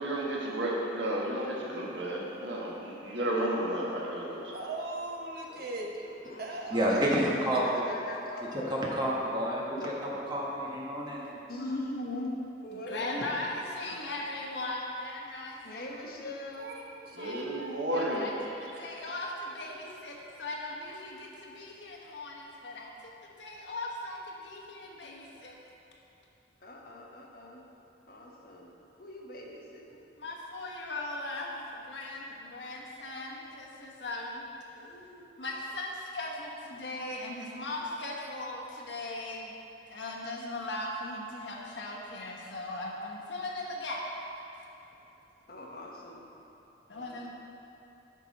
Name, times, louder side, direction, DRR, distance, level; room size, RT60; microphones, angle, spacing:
voice 1, 0.0-4.6 17.1-18.2, right 1 dB, 80° right, -3 dB, 1.4 m, -32 dB
voice 2, 4.5-6.1 6.4-7.0 16.6-16.7 17.0-17.8, right 2 dB, 55° right, 0 dB, 1.0 m, -38 dB
voice 3, 6.0-6.6 6.9-8.7 9.8-9.9 11.5-11.8 12.6-13.4 15.6-16.8 26.6-27.6 28.1-28.7 29.0-30.0 34.7-35.2 42.4-42.6 45.5-46.2 46.9-47.3, left 1 dB, 55° left, -1 dB, 1.1 m, -44 dB
voice 4, 6.7-7.8 8.7-9.9 10.3-11.4, equal, 25° right, -5 dB, 1.3 m, -29 dB
voice 5, 11.5-12.4 12.7-15.9 17.2-17.5 17.9-18.3 18.8-25.6 30.2-34.5 35.4-39.6 39.9-44.0 46.9-47.3, left 2 dB, 75° left, -2 dB, 1.2 m, -38 dB
9.7 x 5.9 x 4.1 m, 3.0 s
head